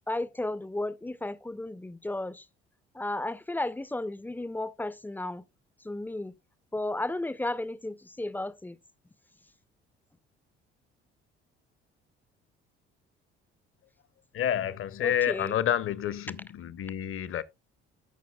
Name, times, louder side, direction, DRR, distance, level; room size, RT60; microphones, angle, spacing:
voice 1, 0.1-2.5 2.9-5.4 5.8-6.3 6.7-8.8 15.0-15.5, left 2 dB, 5° left, 0.5 m, -34 dB
voice 2, 14.3-17.4, left 10 dB, 40° left, 0.8 m, -29 dB
14.5 x 5.7 x 2.2 m
figure-of-eight pair, 50°, 32 cm